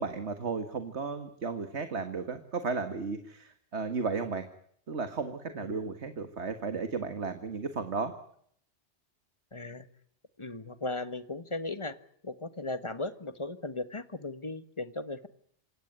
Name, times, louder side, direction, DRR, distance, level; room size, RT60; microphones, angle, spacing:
voice 1, 0.0-4.5 4.9-8.1, right 4 dB, 85° right, 9 dB, 2.0 m, -34 dB
voice 2, 5.5-6.0 9.5-9.9 10.4-12.0 12.2-15.3, left 2 dB, 25° left, 12 dB, 1.5 m, -37 dB
27.0 x 17.0 x 9.7 m, 0.66 s
omnidirectional pair, 1.1 m